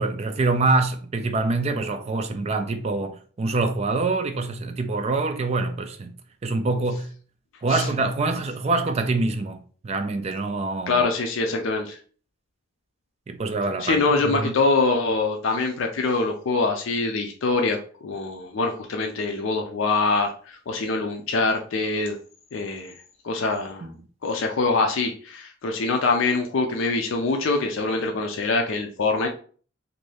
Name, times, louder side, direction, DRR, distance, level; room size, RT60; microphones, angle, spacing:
voice 1, 0.0-6.2 6.4-7.1 7.6-9.6 9.8-11.0 13.3-14.5 23.8-23.9, right 3 dB, 30° right, 0.3 m, -25 dB
voice 2, 10.9-12.0 13.8-22.2 22.5-22.9 23.2-23.9 24.2-29.3, left 3 dB, 70° left, 0.4 m, -24 dB
2.6 x 2.6 x 3.2 m
head